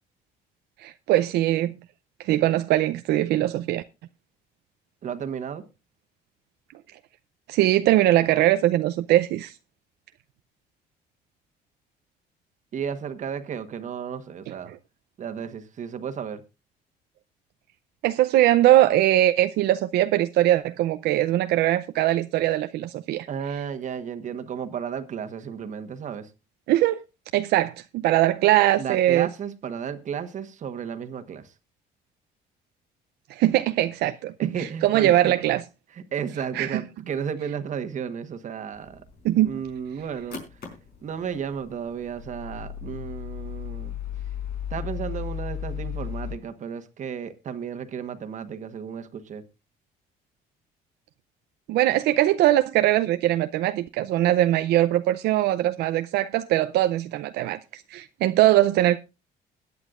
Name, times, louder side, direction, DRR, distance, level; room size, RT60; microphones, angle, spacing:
voice 1, 0.8-1.7 2.2-3.8 7.5-9.5 18.0-23.3 26.7-27.0 27.3-29.3 33.3-34.5 34.8-35.6 36.6-36.8 39.2-39.5 51.7-59.0, right 14 dB, 80° right, 0.6 m, -21 dB
voice 2, 5.0-5.6 12.7-14.7 15.2-16.4 23.3-26.3 28.8-31.5 34.4-35.3 35.9-39.0 39.4-40.7 41.0-44.0 44.7-49.4, right 7 dB, 45° right, 1.3 m, -33 dB
sound 1, 38.7-46.4, left 9 dB, 65° left, 4.6 m, -36 dB
21.5 x 9.4 x 2.5 m
cardioid pair, 110°, 17 cm